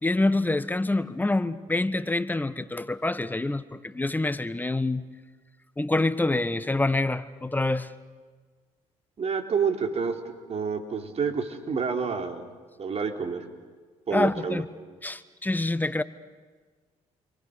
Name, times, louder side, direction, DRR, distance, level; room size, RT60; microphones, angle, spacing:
voice 1, 0.0-5.0 5.8-7.9 14.1-14.7 15.0-16.0, left 2 dB, 10° left, 1.3 m, -26 dB
voice 2, 9.2-10.1 10.5-12.5 12.8-13.4 14.1-14.6, right 5 dB, 50° right, 3.8 m, -28 dB
29.5 x 24.0 x 6.8 m
supercardioid pair, 75°, 14 cm